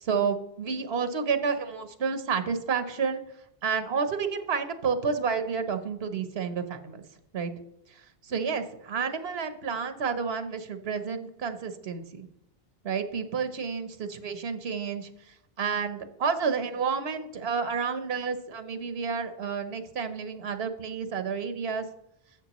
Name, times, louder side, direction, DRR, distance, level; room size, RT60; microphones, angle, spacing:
voice 1, 0.0-3.2 3.6-7.0 7.3-7.5 7.9-12.3 12.8-21.9, right 6 dB, 80° right, 9 dB, 1.2 m, -30 dB
12.0 x 7.4 x 3.0 m, 0.81 s
omnidirectional pair, 1.1 m